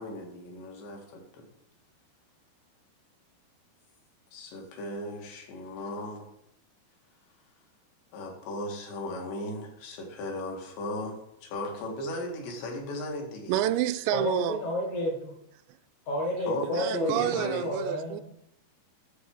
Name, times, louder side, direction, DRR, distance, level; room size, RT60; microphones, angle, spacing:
voice 1, 0.0-1.5 4.3-6.3 8.1-11.2 11.4-13.6 16.5-17.7, left 1 dB, 80° left, 4.1 m, -36 dB
voice 2, 13.5-14.6 16.7-18.2, right 12 dB, 85° right, 2.8 m, -29 dB
voice 3, 14.1-15.3 16.1-18.2, left 1 dB, 60° left, 2.1 m, -31 dB
9.6 x 6.9 x 4.6 m
omnidirectional pair, 4.9 m